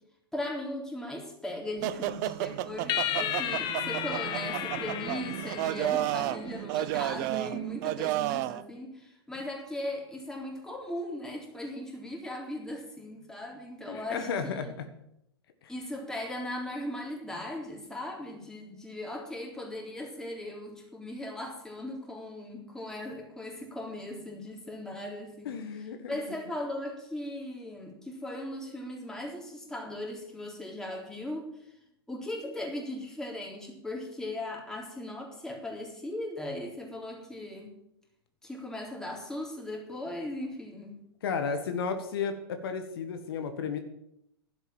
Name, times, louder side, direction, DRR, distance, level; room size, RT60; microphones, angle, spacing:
voice 1, 0.3-14.3 14.6-14.7 15.7-25.6 26.1-31.5 32.1-37.7 38.4-41.0, left 1 dB, 5° left, -1 dB, 3.8 m, -38 dB
sound 1, 1.8-8.6, right 15 dB, 45° right, 0.6 m, -32 dB
sound 2, 2.9-6.4, left 11 dB, 35° left, 1.2 m, -33 dB
voice 2, 13.9-14.9 15.6-15.7 25.4-26.4 41.2-43.8, left 5 dB, 65° left, 7 dB, 1.6 m, -33 dB
11.5 x 8.0 x 8.8 m, 0.79 s
hypercardioid pair, 110°, 13 cm